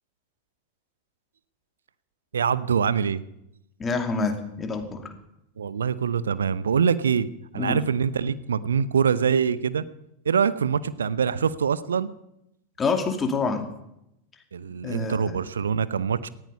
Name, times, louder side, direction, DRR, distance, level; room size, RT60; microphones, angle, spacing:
voice 1, 2.3-3.2 5.6-7.3 7.5-9.8 10.2-12.1 14.5-16.3, right 7 dB, 70° right, 17 dB, 0.8 m, -24 dB
voice 2, 3.8-5.1 7.5-7.8 12.8-13.7 14.8-15.4, left 4 dB, 20° left, 6 dB, 2.5 m, -27 dB
18.5 x 14.5 x 5.4 m, 0.83 s
figure-of-eight pair, 90°, 0 cm